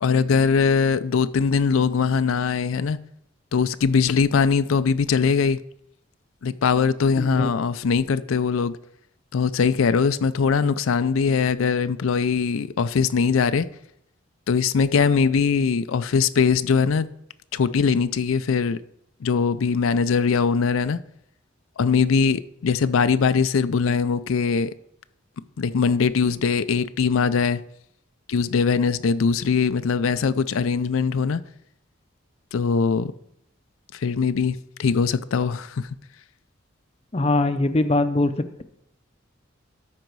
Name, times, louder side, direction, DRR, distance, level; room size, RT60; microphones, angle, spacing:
voice 1, 0.0-3.0 3.5-5.6 6.4-8.8 9.3-13.7 14.5-17.1 17.5-18.8 19.2-21.0 21.8-24.7 25.6-27.6 28.3-31.4 32.5-33.1 33.9-35.9, left 5 dB, 90° left, 0.4 m, -21 dB
voice 2, 7.2-7.5 37.1-38.3, left 2 dB, 30° left, 0.6 m, -21 dB
13.0 x 5.1 x 4.6 m
head